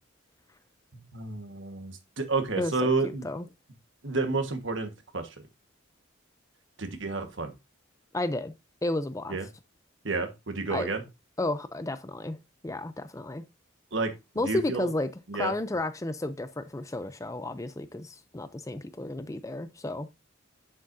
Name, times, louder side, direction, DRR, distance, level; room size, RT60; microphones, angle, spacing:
voice 1, 0.9-3.3 4.0-5.3 6.8-7.5 9.3-9.5 10.0-11.0 13.9-14.9 15.3-15.5, right 3 dB, 60° right, 1.5 m, -30 dB
voice 2, 2.6-2.9 3.2-3.5 8.1-8.5 8.8-9.4 10.7-10.9 11.4-12.4 12.6-13.4 14.4-20.1, left 2 dB, 15° left, 0.4 m, -32 dB
8.8 x 7.5 x 2.7 m
head